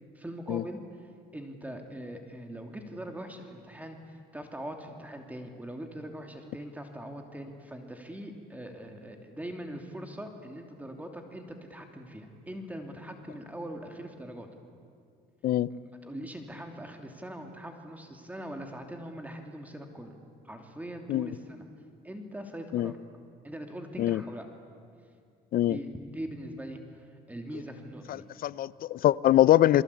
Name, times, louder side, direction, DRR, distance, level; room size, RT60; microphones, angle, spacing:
voice 1, 0.1-0.8 1.3-4.0 4.3-14.5 15.7-20.2 20.4-21.7 22.0-23.0 23.4-24.4 25.6-28.2, right 1 dB, 10° right, 4 dB, 3.0 m, -41 dB
voice 2, 28.4-29.8, left 13 dB, 60° left, 18 dB, 0.7 m, -23 dB
29.5 x 22.5 x 8.6 m, 2.2 s
cardioid pair, 110°, 17 cm